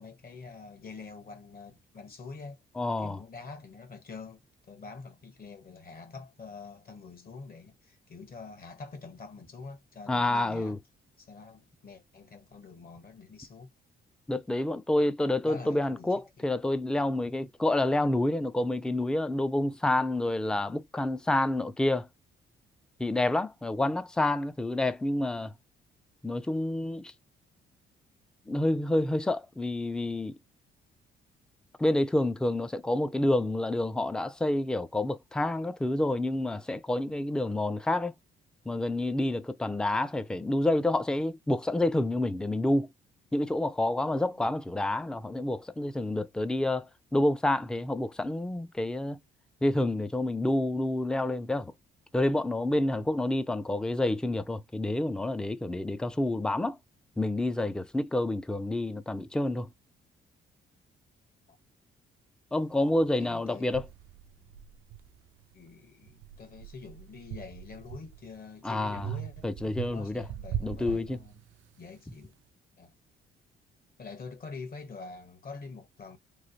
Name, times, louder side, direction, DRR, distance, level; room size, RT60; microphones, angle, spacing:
voice 1, 0.0-2.6 3.0-10.8 11.2-13.7 15.4-16.5 44.3-44.4 58.5-58.6 61.5-61.6 63.1-63.8 65.5-71.4 71.8-72.4 72.8-72.9 74.0-76.2, left 4 dB, 45° left, 1.1 m, -46 dB
voice 2, 2.8-3.2 10.1-10.8 14.3-22.1 23.0-25.5 26.2-27.1 28.5-30.4 31.8-38.1 38.7-42.9 43.3-49.2 49.6-51.7 52.1-56.8 57.2-59.7 62.5-63.8 68.6-69.1 69.4-70.2 70.6-71.2, left 1 dB, 5° left, 0.3 m, -28 dB
sound 1, 62.9-63.0 63.7-65.6 66.0-68.4 69.0-71.7, right 11 dB, 80° right, 0.4 m, -40 dB
3.1 x 2.3 x 2.6 m
cardioid pair, 90°, 20 cm